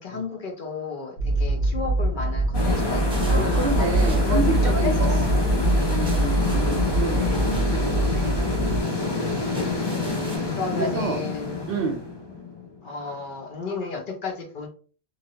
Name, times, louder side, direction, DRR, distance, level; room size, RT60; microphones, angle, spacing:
voice 1, 0.0-5.5 5.9-6.2 6.7-6.9 10.5-11.7 12.8-14.7, left 4 dB, 55° left, 3 dB, 0.8 m, -33 dB
sound 1, 1.2-8.8, right 1 dB, 80° left, 1.0 m, -23 dB
sound 2, 2.5-13.1, left 3 dB, 35° left, 0.4 m, -27 dB
sound 3, 3.1-10.4, left 1 dB, 5° right, 0.7 m, -42 dB
voice 2, 3.3-5.3 5.9-8.3 10.7-11.2 11.7-12.0, right 4 dB, 65° right, 5 dB, 0.7 m, -29 dB
3.1 x 2.5 x 2.7 m, 0.40 s
omnidirectional pair, 1.1 m